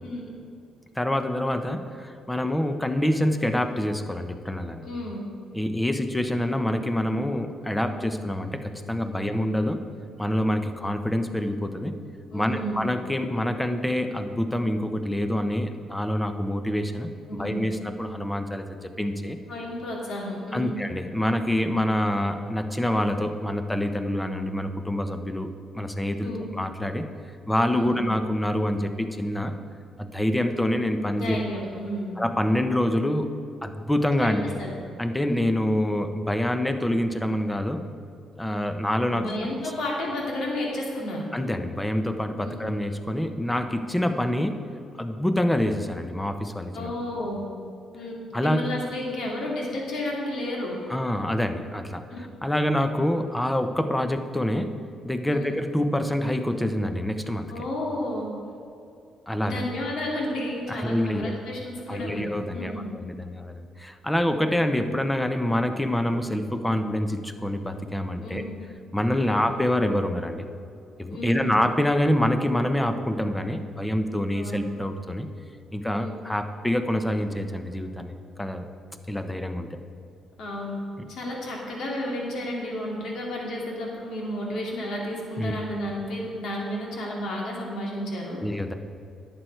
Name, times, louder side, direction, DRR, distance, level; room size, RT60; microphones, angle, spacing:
voice 1, 1.0-4.9 5.5-9.8 10.2-12.0 12.3-19.4 20.5-27.0 27.5-29.5 30.0-31.4 32.2-33.3 33.6-34.6 35.0-37.8 38.4-39.3 41.3-44.6 45.0-46.9 48.3-48.7 50.9-54.7 55.0-57.6 59.3-59.6 60.7-61.3 61.9-68.4 68.9-70.4 71.0-75.3 75.7-78.1 78.4-78.7 79.1-79.8 81.0-81.1 85.4-85.5 88.4-88.7, left 1 dB, 10° left, 8 dB, 0.8 m, -26 dB
voice 2, 4.8-5.2 9.1-9.2 12.3-12.8 17.3-17.6 19.5-20.7 26.2-26.5 27.7-28.0 31.1-32.2 34.2-34.7 39.1-41.2 42.4-42.6 46.7-47.5 47.9-48.1 48.4-50.8 52.1-52.2 55.3-55.4 57.5-58.3 59.4-62.9 68.2-68.5 69.2-69.4 71.1-71.5 74.4-74.6 76.0-76.1 80.4-80.8 81.1-88.4, left 1 dB, 70° left, -2 dB, 2.5 m, -32 dB
11.0 x 7.8 x 4.6 m, 2.6 s
cardioid pair, 90°, 0 cm